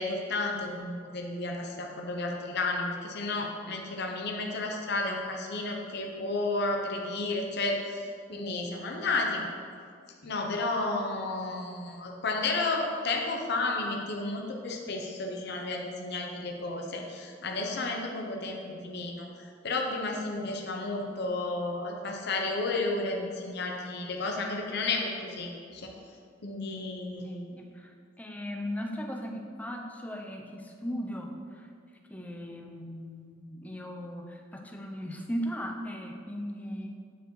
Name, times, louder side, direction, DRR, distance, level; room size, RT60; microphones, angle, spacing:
voice 1, 0.0-9.4 10.2-25.9 26.4-27.5, left 2 dB, 60° left, 1 dB, 0.7 m, -32 dB
voice 2, 27.2-31.7 32.1-36.9, equal, 10° left, 1 dB, 0.5 m, -38 dB
8.9 x 4.7 x 3.1 m, 2.2 s
head